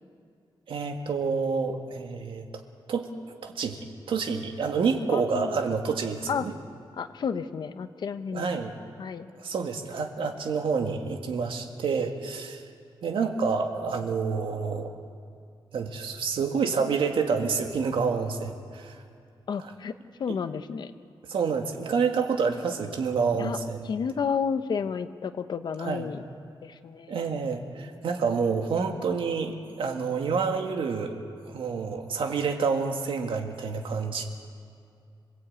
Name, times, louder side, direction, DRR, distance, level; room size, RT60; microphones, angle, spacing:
voice 1, 0.7-2.4 2.9-3.1 3.4-6.5 8.3-8.7 9.4-12.6 13.0-15.0 15.7-19.0 19.6-19.7 20.3-20.4 21.3-23.9 25.8-26.1 27.1-31.2 31.5-34.3, right 5 dB, 70° right, 4 dB, 2.0 m, -28 dB
voice 2, 5.1-5.5 6.3-6.4 6.9-8.5 9.0-9.3 19.5-19.9 20.2-20.9 23.4-23.6 23.8-26.2 26.6-27.2, left 6 dB, 55° left, 10 dB, 0.9 m, -31 dB
26.5 x 19.0 x 8.8 m, 2.4 s
wide cardioid pair, 180°, 9 cm